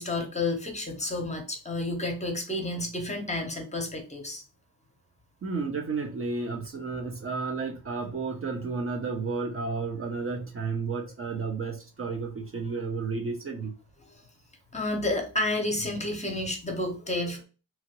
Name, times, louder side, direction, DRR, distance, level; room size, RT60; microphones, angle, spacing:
voice 1, 0.0-4.4 14.1-14.3 14.7-17.4, left 2 dB, 15° left, 3 dB, 0.8 m, -30 dB
voice 2, 5.4-13.7, right 4 dB, 30° right, 2 dB, 0.5 m, -32 dB
2.9 x 2.5 x 2.9 m, 0.34 s
cardioid pair, 100°, 42 cm